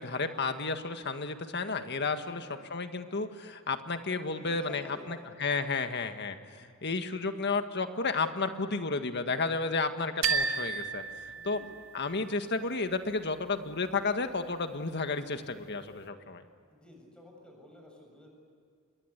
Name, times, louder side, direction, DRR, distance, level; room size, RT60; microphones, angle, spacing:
voice 1, 0.0-11.6 11.9-16.4, left 4 dB, 55° left, 7 dB, 1.7 m, -32 dB
voice 2, 2.2-2.6 4.3-5.4 11.3-11.7 16.7-18.3, left 1 dB, 5° left, 1 dB, 7.3 m, -51 dB
sound 1, 10.2-12.1, right 4 dB, 90° right, 1.6 m, -32 dB
28.0 x 22.0 x 8.3 m, 2.4 s
head